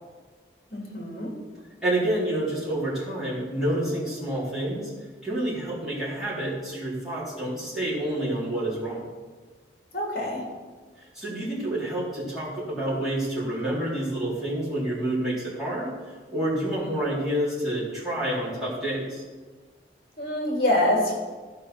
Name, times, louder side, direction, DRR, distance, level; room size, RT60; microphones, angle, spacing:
voice 1, 0.7-1.3 9.9-10.4 20.2-21.1, left 1 dB, 55° left, -2 dB, 3.0 m, -25 dB
voice 2, 1.8-4.9 5.2-9.1 11.0-19.2, right 1 dB, 5° right, -11 dB, 3.9 m, -28 dB
14.0 x 5.4 x 6.0 m, 1.3 s
head